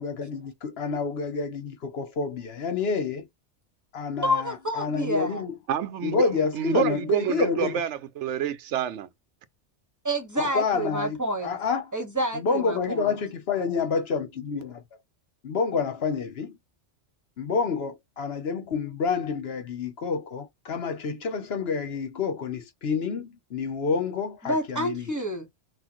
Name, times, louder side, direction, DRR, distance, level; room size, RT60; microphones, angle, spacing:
voice 1, 0.0-3.3 3.9-4.5 4.8-5.6 6.0-7.8 10.4-11.9 12.3-14.8 15.4-16.6 17.4-25.1, left 5 dB, 65° left, 1.0 m, -28 dB
voice 2, 4.2-5.4 10.0-11.6 11.9-13.1 24.4-25.5, equal, 15° right, 1.5 m, -28 dB
voice 3, 5.7-9.1, right 9 dB, 80° right, 0.9 m, -28 dB
6.0 x 2.5 x 3.0 m
omnidirectional pair, 1.2 m